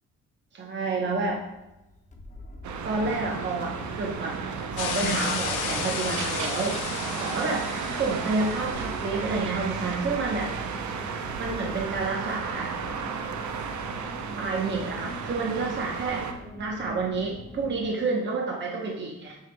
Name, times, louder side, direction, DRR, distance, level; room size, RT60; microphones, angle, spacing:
voice 1, 0.5-1.4 2.8-4.4 4.7-6.8 7.2-10.5 11.4-12.7 14.4-16.3 16.6-19.4, right 3 dB, 35° right, -1 dB, 1.0 m, -29 dB
sound 1, 0.9-17.9, left 1 dB, 25° left, 1.0 m, -43 dB
sound 2, 2.6-16.3, right 6 dB, 70° right, 0.7 m, -34 dB
sound 3, 4.8-9.0, left 6 dB, 85° left, 0.8 m, -33 dB
7.2 x 5.7 x 2.3 m, 0.98 s
cardioid pair, 90°, 30 cm